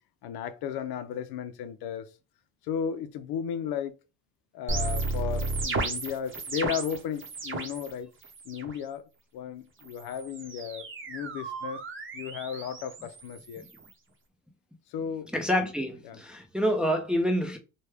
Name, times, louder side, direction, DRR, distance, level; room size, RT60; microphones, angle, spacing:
voice 1, 0.2-2.1 2.7-3.9 4.5-8.1 8.5-9.0 9.3-11.8 12.1-13.6 14.9-15.3 16.0-16.2, left 8 dB, 70° left, 0.6 m, -34 dB
sound 1, 4.7-7.9 8.2-8.8 9.8-13.9, right 3 dB, 30° right, 0.8 m, -34 dB
voice 2, 15.3-17.6, equal, ahead, 0.5 m, -27 dB
3.1 x 2.2 x 3.4 m
cardioid pair, 115°, 38 cm